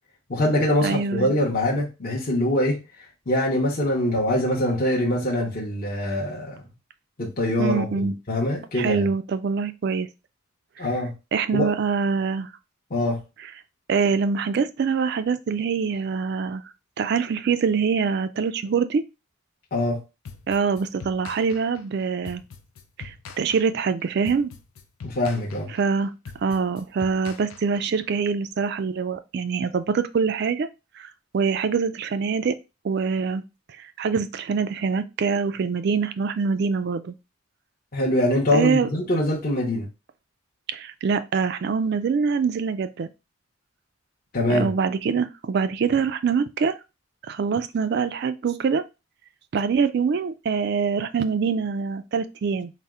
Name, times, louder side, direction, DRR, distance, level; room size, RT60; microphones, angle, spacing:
voice 1, 0.3-2.8 3.3-6.6 7.2-9.1 10.8-11.1 11.5-11.7 12.9-13.2 19.7-20.0 25.0-25.7 37.9-39.9 44.3-44.7, left 1 dB, 40° left, 0.7 m, -23 dB
voice 2, 0.8-1.3 7.6-8.1 8.7-10.1 10.8-10.9 11.3-12.5 13.9-16.6 17.0-19.0 20.5-22.4 23.0-24.5 25.7-26.1 26.4-30.7 31.0-32.6 32.8-33.4 33.8-37.2 38.5-38.9 40.7-43.1 44.5-46.8 47.3-48.8 49.5-52.7, right 5 dB, 50° right, 0.3 m, -24 dB
sound 1, 20.2-28.1, left 5 dB, 75° left, 0.5 m, -43 dB
4.1 x 2.0 x 3.5 m
head